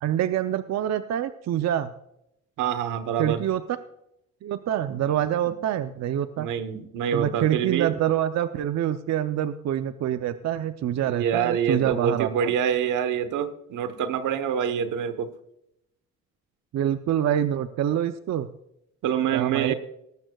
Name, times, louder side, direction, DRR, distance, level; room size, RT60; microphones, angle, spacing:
voice 1, 0.0-1.9 3.2-3.6 4.4-6.5 7.1-12.5 16.7-18.5 19.3-19.7, right 11 dB, 60° right, 10 dB, 0.6 m, -26 dB
voice 2, 2.6-3.4 4.9-5.0 5.5-5.6 6.4-7.9 11.1-15.3 19.0-19.7, right 8 dB, 85° right, 11 dB, 1.2 m, -26 dB
18.5 x 14.0 x 2.4 m, 0.81 s
cardioid pair, 90°, 30 cm